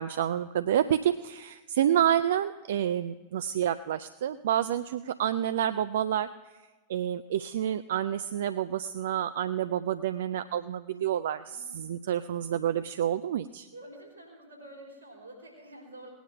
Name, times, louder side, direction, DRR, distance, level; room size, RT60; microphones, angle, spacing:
voice 1, 0.0-6.3 6.9-13.7, right 10 dB, 60° right, 12 dB, 0.4 m, -28 dB
voice 2, 11.5-11.9 13.7-16.1, right 1 dB, 85° right, -3 dB, 4.1 m, -48 dB
18.5 x 10.0 x 4.9 m, 1.2 s
figure-of-eight pair, 90°, 0 cm